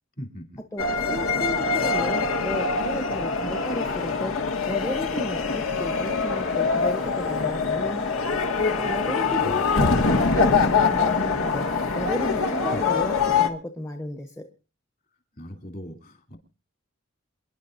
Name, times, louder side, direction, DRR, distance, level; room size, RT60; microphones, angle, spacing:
voice 1, 0.2-0.6 9.4-9.9 12.7-12.8 15.4-16.4, equal, 45° left, 4 dB, 3.0 m, -39 dB
voice 2, 0.7-4.4 4.7-8.0 8.6-11.7 11.9-14.4, left 1 dB, 15° left, 5 dB, 1.0 m, -33 dB
sound 1, 0.8-13.5, left 4 dB, 85° left, 1.9 m, -24 dB
28.0 x 11.0 x 2.6 m, 0.32 s
head